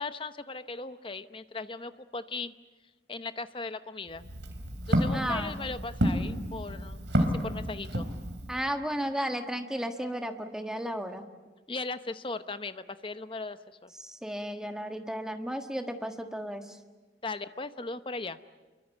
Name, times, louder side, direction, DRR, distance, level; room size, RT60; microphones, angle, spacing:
voice 1, 0.0-2.5 3.1-4.2 4.9-8.1 11.7-13.9 17.2-18.4, left 3 dB, 30° left, 12 dB, 0.8 m, -38 dB
Walk footsteps, 4.1-8.6, equal, 80° right, 3.8 m, -30 dB
voice 2, 5.1-5.7 8.5-11.2 14.0-16.8, equal, 5° right, 5 dB, 1.5 m, -34 dB
27.5 x 23.5 x 8.3 m, 1.3 s
head